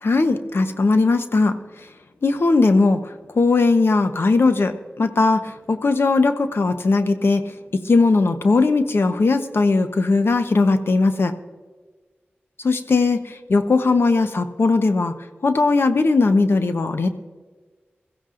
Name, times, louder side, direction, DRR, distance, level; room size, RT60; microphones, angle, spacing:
voice 1, 0.0-1.6 2.2-3.0 3.3-11.3 12.6-15.1 15.4-17.1, left 3 dB, 70° left, 8 dB, 1.0 m, -18 dB
22.0 x 15.0 x 2.6 m, 1.4 s
cardioid pair, 50°, 4 cm